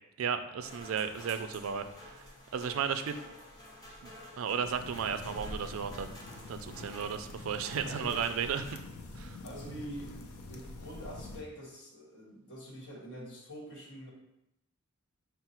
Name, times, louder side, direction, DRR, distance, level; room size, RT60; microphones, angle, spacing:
voice 1, 0.2-2.2 2.5-3.2 4.0-6.1 6.5-8.8 9.1-9.4, right 7 dB, 65° right, 9 dB, 0.3 m, -34 dB
sound 1, 0.6-8.7, left 1 dB, 15° left, 0.8 m, -50 dB
sound 2, 4.6-11.4, left 2 dB, 75° left, 0.5 m, -46 dB
voice 2, 7.8-8.2 9.4-10.2 10.5-14.1, equal, 50° left, -4 dB, 1.3 m, -45 dB
4.6 x 2.0 x 4.3 m, 0.86 s
head